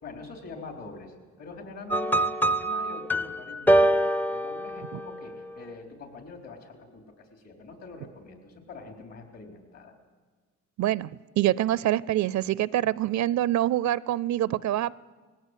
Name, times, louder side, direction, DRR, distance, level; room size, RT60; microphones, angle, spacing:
voice 1, 0.0-2.3 2.6-9.9, left 3 dB, 60° left, 3 dB, 4.4 m, -44 dB
sound 1, 1.9-5.3, right 1 dB, 5° left, 0.5 m, -24 dB
voice 2, 10.8-11.1 11.4-15.0, right 13 dB, 70° right, 21 dB, 0.5 m, -25 dB
20.0 x 17.0 x 8.3 m, 1.4 s
cardioid pair, 90°, 30 cm